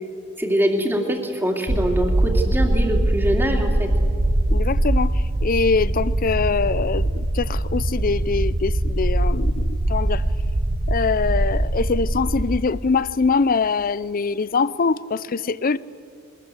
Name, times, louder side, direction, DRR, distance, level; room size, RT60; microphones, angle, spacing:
voice 1, 0.4-3.9, equal, 10° right, 2.7 m, -23 dB
sound 1, 1.7-12.6, right 1 dB, 40° right, 1.0 m, -22 dB
voice 2, 4.5-10.2 10.9-15.8, left 4 dB, 45° left, 0.5 m, -23 dB
22.5 x 20.0 x 8.3 m
head